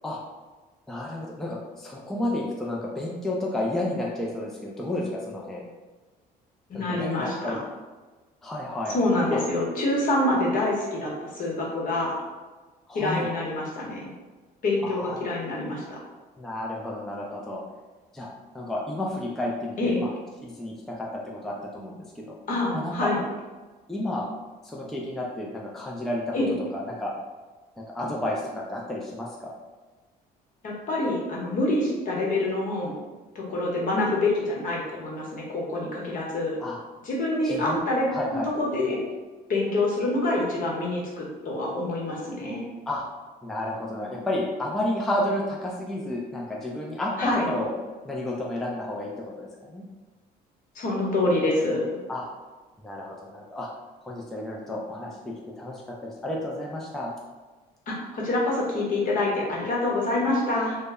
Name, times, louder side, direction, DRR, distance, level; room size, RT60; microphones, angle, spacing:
voice 1, 0.9-5.7 6.7-7.6 8.4-8.9 9.3-9.4 12.9-13.3 14.8-15.2 16.4-17.6 18.1-18.3 18.5-20.1 20.4-22.4 22.7-23.1 23.9-24.3 24.6-26.3 26.7-27.1 27.8-29.5 36.6-36.8 37.4-37.8 38.1-38.5 42.9-43.0 43.4-47.7 48.0-49.8 52.1-52.3 52.8-53.7 54.0-57.1, left 1 dB, ahead, -3 dB, 0.3 m, -31 dB
voice 2, 6.7-7.6 8.9-12.2 12.9-14.1 14.6-16.0 19.8-20.0 22.5-23.2 26.3-26.5 30.6-32.9 33.3-36.6 37.0-38.0 38.3-39.0 39.5-42.6 47.2-47.5 50.7-51.9 57.9-60.8, left 2 dB, 55° left, -3 dB, 0.9 m, -26 dB
2.1 x 2.1 x 3.5 m, 1.3 s
cardioid pair, 110°, 17 cm